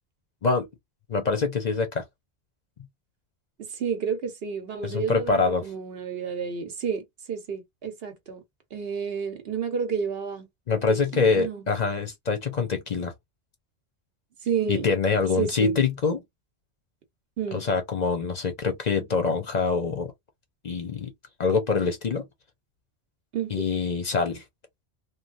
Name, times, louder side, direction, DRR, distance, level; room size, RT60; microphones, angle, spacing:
voice 1, 1.1-2.0 4.8-5.7 10.7-13.1 14.7-16.2 17.5-20.1 20.6-21.1 21.4-22.2 23.5-24.4, left 4 dB, 50° left, 0.7 m, -25 dB
voice 2, 3.6-8.4 8.7-10.5 10.9-11.6 14.4-14.9 15.4-15.8 17.4-17.6 23.3-23.7, right 6 dB, 65° right, 1.1 m, -31 dB
3.1 x 2.3 x 2.5 m
omnidirectional pair, 1.1 m